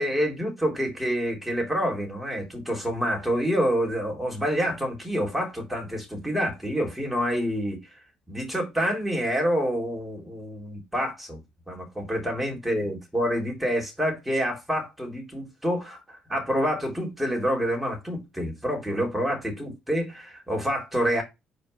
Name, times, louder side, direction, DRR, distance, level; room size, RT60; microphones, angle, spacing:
voice 1, 0.0-7.8 8.3-11.4 11.7-21.2, equal, 5° right, 3.6 m, -27 dB
5.2 x 4.4 x 5.6 m
supercardioid pair, 80°, 3 cm